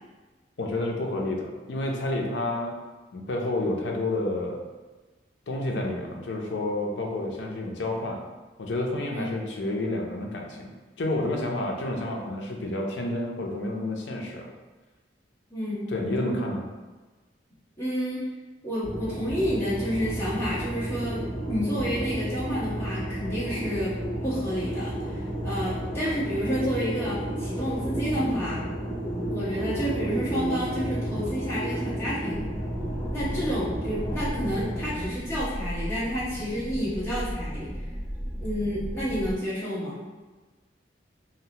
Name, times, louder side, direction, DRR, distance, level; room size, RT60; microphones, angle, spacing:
voice 1, 0.6-2.8 3.1-4.6 5.5-8.2 8.6-10.7 11.0-14.5 15.9-16.7, left 1 dB, 75° left, 1 dB, 0.5 m, -29 dB
voice 2, 15.5-15.9 17.8-18.2 18.6-23.9 24.2-28.6 29.3-32.5 33.1-37.7 38.4-40.0, equal, 15° left, -11 dB, 1.0 m, -30 dB
sound 1, 18.8-35.0, right 1 dB, 55° left, 1.1 m, -32 dB
sound 2, 32.3-39.4, equal, 10° right, 0.3 m, -35 dB
2.7 x 2.0 x 2.8 m, 1.3 s
head